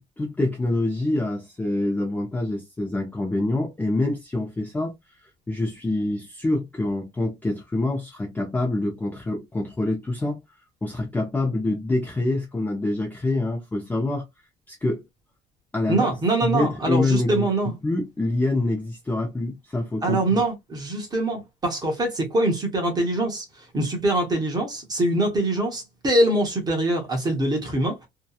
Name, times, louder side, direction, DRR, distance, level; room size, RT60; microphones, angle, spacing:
voice 1, 0.2-4.9 5.5-10.4 10.8-14.2 14.7-15.0 15.7-16.1 16.4-17.5 17.8-20.4, left 2 dB, 10° left, 0.5 m, -26 dB
voice 2, 15.9-17.7 20.0-28.1, right 1 dB, 20° right, 0.9 m, -24 dB
2.7 x 2.2 x 2.3 m
cardioid pair, 175°, 19 cm